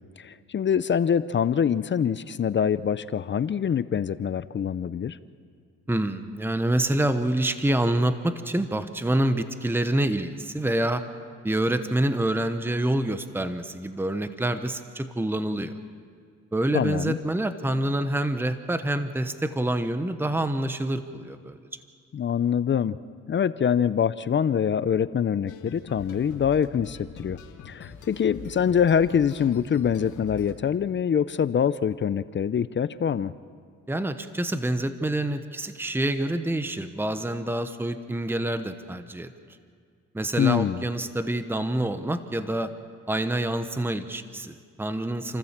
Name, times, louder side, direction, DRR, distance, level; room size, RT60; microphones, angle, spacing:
voice 1, 0.2-5.2 16.7-17.2 22.1-23.0 23.3-27.4 27.7-33.3 40.4-40.8, left 8 dB, 40° left, 15 dB, 0.6 m, -24 dB
voice 2, 5.9-11.0 11.4-15.7 16.5-21.6 33.9-39.3 40.1-42.7 43.1-45.4, right 1 dB, 5° right, 10 dB, 1.1 m, -27 dB
sound 1, 25.5-30.5, left 6 dB, 75° left, 1.8 m, -44 dB
29.0 x 14.0 x 7.4 m, 2.1 s
cardioid pair, 90°, 30 cm